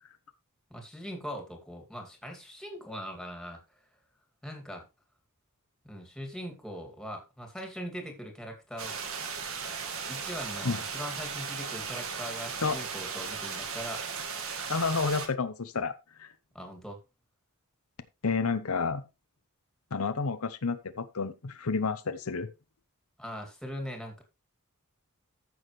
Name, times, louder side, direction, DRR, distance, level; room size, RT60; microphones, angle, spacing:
voice 1, 0.7-3.8 4.4-4.9 5.8-9.0 10.1-14.1 15.8-15.9 16.5-17.0 23.2-24.2, equal, 5° left, 2.4 m, -41 dB
sound 1, 8.8-15.3, right 5 dB, 65° right, 1.9 m, -36 dB
voice 2, 14.7-15.9 16.2-16.3 18.2-19.0 19.9-22.5, left 4 dB, 75° left, 0.8 m, -30 dB
14.0 x 6.4 x 3.2 m
head